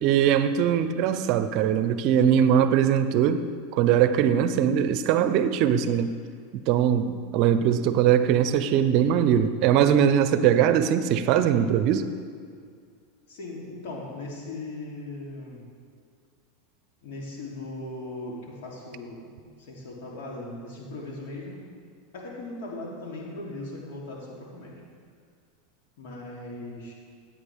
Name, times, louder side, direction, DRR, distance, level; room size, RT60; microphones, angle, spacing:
voice 1, 0.0-3.4 3.7-6.1 6.7-12.1, right 9 dB, 55° right, 11 dB, 0.6 m, -21 dB
voice 2, 13.3-15.6 17.0-21.7 22.1-24.8 26.0-26.9, left 2 dB, 70° left, -3 dB, 3.2 m, -38 dB
15.5 x 8.6 x 3.6 m, 2.1 s
hypercardioid pair, 105°, 0 cm